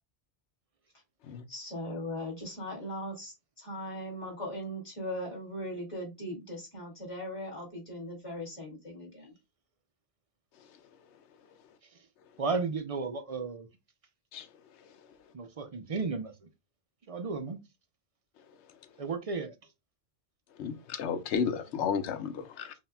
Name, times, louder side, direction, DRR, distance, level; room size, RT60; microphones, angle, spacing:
voice 1, 1.5-9.3, equal, 30° left, 2.3 m, -39 dB
voice 2, 12.4-13.7 15.3-16.3 17.1-17.6 19.0-19.5, right 4 dB, 45° right, 0.5 m, -33 dB
voice 3, 20.6-22.7, left 7 dB, 85° left, 1.0 m, -32 dB
5.6 x 2.8 x 2.2 m
omnidirectional pair, 1.1 m